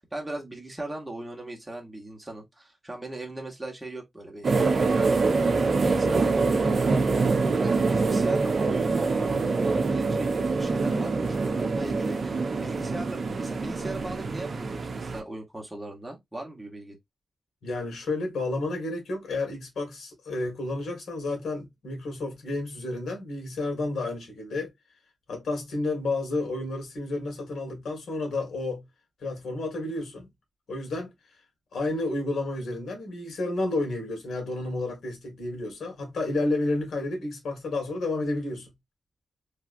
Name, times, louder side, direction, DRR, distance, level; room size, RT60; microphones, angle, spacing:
voice 1, 0.0-5.2 5.7-17.0, right 1 dB, 10° right, 1.2 m, -39 dB
sound 1, 4.4-15.2, right 4 dB, 55° right, 0.6 m, -25 dB
voice 2, 17.6-24.7 25.3-28.8 29.2-30.3 30.7-31.1 31.7-38.7, left 2 dB, 80° left, 1.7 m, -31 dB
3.3 x 2.7 x 2.5 m
wide cardioid pair, 105°, 0 cm